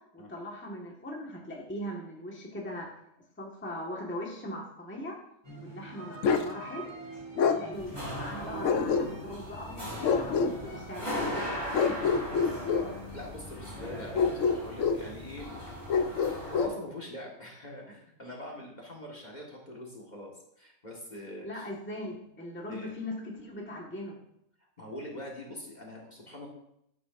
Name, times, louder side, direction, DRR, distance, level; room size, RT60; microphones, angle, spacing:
voice 1, 0.1-2.9 3.4-5.1 5.6-6.9 7.4-12.1 21.4-24.2, left 1 dB, 10° left, -2 dB, 1.5 m, -40 dB
sound 1, 5.4-16.2, right 2 dB, 20° right, 2.4 m, -48 dB
Bark, 6.2-6.5 7.4-7.6 8.6-9.4 10.0-10.5 11.7-12.9 14.1-15.0 15.9-16.8, left 5 dB, 70° left, 1.0 m, -26 dB
sound 2, 7.7-16.7, equal, 40° right, 3.6 m, -39 dB
voice 2, 12.7-15.6 16.1-20.3 20.6-21.7 22.6-22.9 24.8-26.5, left 1 dB, 30° left, -1 dB, 1.7 m, -43 dB
11.5 x 9.2 x 2.6 m, 0.76 s
omnidirectional pair, 1.4 m